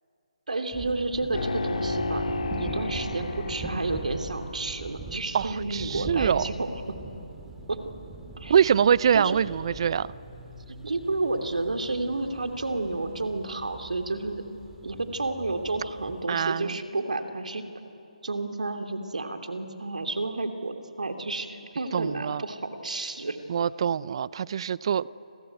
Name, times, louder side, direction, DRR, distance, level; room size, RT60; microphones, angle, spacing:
voice 1, 0.5-2.2 2.5-6.8 7.7-7.8 8.4-8.5 9.1-9.4 10.7-14.4 14.8-17.6 18.2-23.4, right 2 dB, 75° right, 6 dB, 2.9 m, -31 dB
sound 1, 0.7-16.2, right 3 dB, 10° right, 2.3 m, -41 dB
sound 2, 1.3-4.8, left 2 dB, 60° left, 3.0 m, -32 dB
voice 2, 5.3-6.4 8.5-10.1 16.3-16.8 21.9-22.4 23.5-25.1, right 8 dB, 45° right, 20 dB, 0.6 m, -24 dB
29.5 x 22.0 x 9.2 m, 2.9 s
figure-of-eight pair, 150°, 4 cm